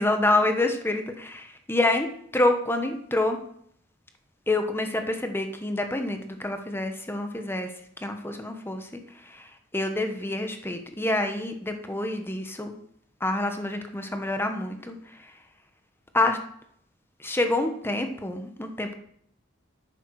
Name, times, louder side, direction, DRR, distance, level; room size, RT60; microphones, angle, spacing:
voice 1, 0.0-2.1 2.3-3.4 4.5-7.7 8.0-12.7 13.2-15.3 16.1-16.4 17.2-18.9, left 2 dB, 10° left, 6 dB, 1.2 m, -27 dB
11.0 x 9.1 x 4.8 m, 0.66 s
head